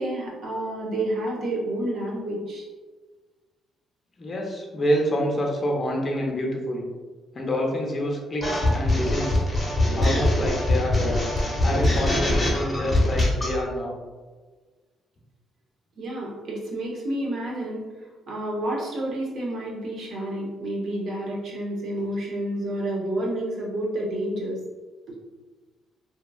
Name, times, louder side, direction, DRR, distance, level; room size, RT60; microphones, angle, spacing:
voice 1, 0.0-2.7 16.0-17.8 18.3-24.6, right 1 dB, 60° right, -3 dB, 0.7 m, -29 dB
voice 2, 4.2-6.8 7.3-9.4 9.9-11.2 11.6-14.0, equal, 40° left, -1 dB, 0.6 m, -27 dB
sound 1, 8.4-13.6, left 1 dB, 15° left, 1.0 m, -22 dB
2.9 x 2.3 x 2.3 m, 1.4 s
cardioid pair, 90°, 0 cm